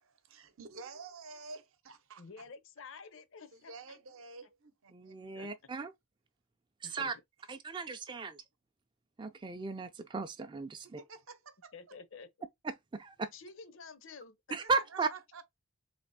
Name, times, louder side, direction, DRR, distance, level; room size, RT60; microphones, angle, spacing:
voice 1, 0.3-2.4 3.5-5.4 11.0-11.7 14.6-14.7 15.1-15.4, right 4 dB, 65° right, 0.7 m, -50 dB
voice 2, 2.2-4.0 5.3-5.5 6.8-7.1 11.7-12.3 13.3-14.4 14.7-14.8, left 5 dB, 60° left, 0.6 m, -50 dB
voice 3, 4.9-5.9 6.8-7.2 7.5-8.4 9.2-11.0 12.6-13.3 14.5-15.1, right 4 dB, 20° right, 0.4 m, -36 dB
3.4 x 2.8 x 4.1 m
head